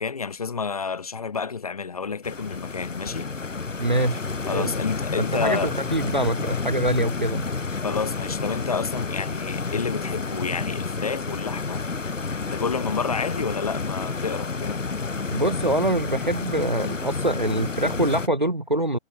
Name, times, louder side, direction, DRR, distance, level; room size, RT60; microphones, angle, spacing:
voice 1, 0.0-3.3 4.5-5.7 7.8-11.9 12.5-14.8, left 5 dB, 30° left, 6.0 m, -29 dB
Stream, 2.2-18.3, left 4 dB, 70° left, 1.5 m, -30 dB
voice 2, 3.8-4.2 4.5-4.7 5.2-5.6 5.9-7.5 15.3-19.0, right 1 dB, 35° right, 0.7 m, -24 dB
figure-of-eight pair, 170°, 40 cm